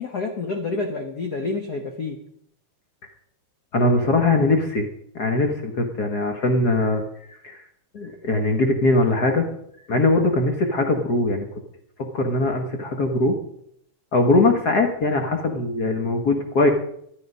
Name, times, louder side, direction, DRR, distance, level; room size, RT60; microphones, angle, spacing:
voice 1, 0.0-2.2, left 3 dB, 75° left, 4 dB, 0.9 m, -28 dB
voice 2, 3.7-4.9 5.1-7.6 7.9-9.5 9.9-11.5 12.1-13.4 14.1-16.7, left 2 dB, 55° left, 4 dB, 1.1 m, -21 dB
12.0 x 11.5 x 5.4 m, 0.72 s
omnidirectional pair, 3.4 m